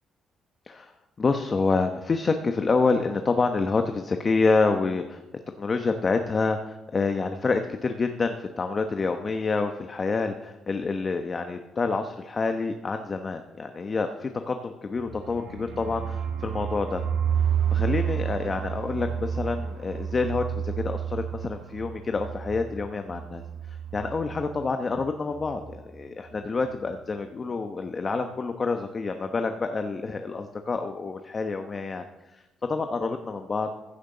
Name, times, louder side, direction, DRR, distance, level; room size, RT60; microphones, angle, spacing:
voice 1, 1.2-5.2 5.6-17.0 17.7-23.4 23.7-32.1 32.3-32.4 32.7-33.7, left 4 dB, 35° left, 6 dB, 1.0 m, -27 dB
sound 1, 15.0-24.7 25.0-25.1 25.3-25.8, right 8 dB, 70° right, 1.2 m, -30 dB
15.0 x 6.7 x 6.6 m, 1.0 s
cardioid pair, 90°, 0 cm